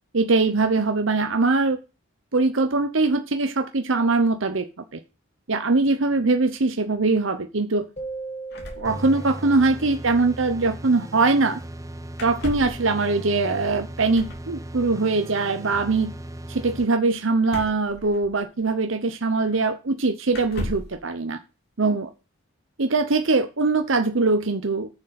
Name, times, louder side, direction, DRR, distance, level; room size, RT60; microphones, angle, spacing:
voice 1, 0.1-1.8 2.3-4.7 4.9-5.0 5.5-7.9 8.8-11.6 12.2-16.1 16.5-21.4 21.8-22.1 22.8-24.9, right 3 dB, 70° right, 7 dB, 0.9 m, -22 dB
sound 1, 8.0-10.2, right 3 dB, 35° left, 1.7 m, -38 dB
sound 2, 8.5-9.6 9.8-9.9 10.1-10.3 12.1-12.9 14.1-14.5 17.4-18.6 19.5-19.6 20.3-21.0, left 1 dB, 55° left, 2.8 m, -36 dB
sound 3, 8.8-16.9, right 1 dB, 15° right, 0.8 m, -37 dB
10.0 x 6.9 x 5.9 m, 0.30 s
head